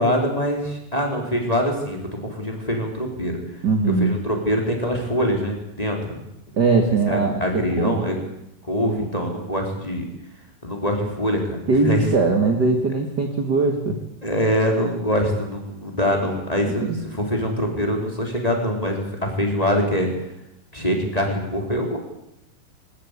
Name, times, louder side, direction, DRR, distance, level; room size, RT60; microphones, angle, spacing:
voice 1, 0.0-3.4 4.0-6.2 7.1-8.2 8.6-10.0 10.6-12.0 14.2-20.1 20.7-22.0, equal, 10° left, 1 dB, 4.1 m, -24 dB
voice 2, 3.6-4.1 6.6-7.4 7.8-8.0 8.8-9.1 11.7-14.0 16.8-17.0, right 3 dB, 35° right, 4 dB, 2.1 m, -20 dB
21.5 x 18.5 x 8.4 m, 0.86 s
omnidirectional pair, 3.9 m